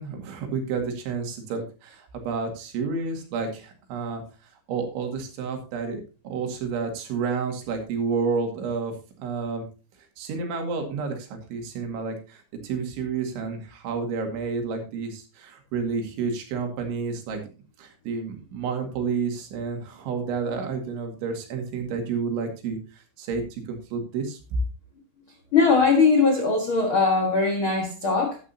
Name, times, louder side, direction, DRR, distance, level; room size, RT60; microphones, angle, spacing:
voice 1, 0.0-4.2 4.7-8.9 9.2-9.7 10.2-17.4 17.8-24.4, right 5 dB, 90° right, 4.5 m, -30 dB
voice 2, 25.5-28.4, left 4 dB, 70° left, 1.2 m, -20 dB
12.0 x 11.0 x 2.8 m
omnidirectional pair, 5.2 m